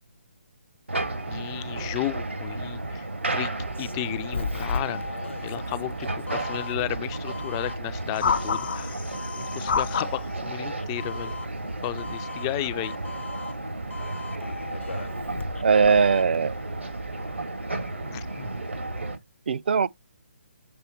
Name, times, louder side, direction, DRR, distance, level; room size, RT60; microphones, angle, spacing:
sound 1, 0.9-19.2, right 2 dB, 90° right, 2.2 m, -33 dB
voice 1, 1.3-3.1 3.3-5.0 5.4-9.0 9.4-11.3 11.8-12.9 18.1-18.5, left 17 dB, 20° left, 0.3 m, -33 dB
Doorbell, 3.6-16.4, left 4 dB, 85° left, 0.9 m, -38 dB
sound 2, 8.2-10.2 11.2-11.4, left 6 dB, 55° left, 0.7 m, -28 dB
voice 2, 15.6-16.5 19.5-19.9, right 5 dB, 60° right, 0.5 m, -20 dB
7.0 x 3.4 x 4.4 m
figure-of-eight pair, 145°, 6 cm